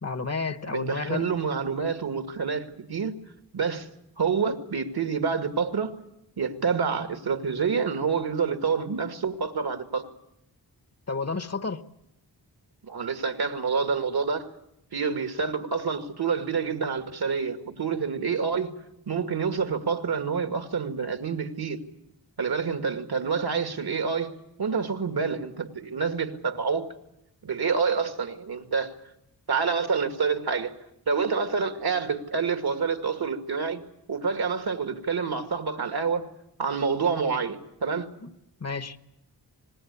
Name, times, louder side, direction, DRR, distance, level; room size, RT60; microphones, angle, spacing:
voice 1, 0.0-1.3 11.1-11.8 38.2-38.3 38.6-39.0, left 4 dB, 40° left, 1.2 m, -31 dB
voice 2, 0.6-3.2 3.5-3.9 4.2-6.0 6.4-10.1 12.8-14.5 14.9-18.7 19.1-21.8 22.4-26.9 27.4-29.0 29.5-30.8 31.1-33.8 34.1-36.3 36.6-38.1, right 5 dB, 65° right, 2.1 m, -27 dB
26.5 x 20.5 x 8.3 m
wide cardioid pair, 130°, 41 cm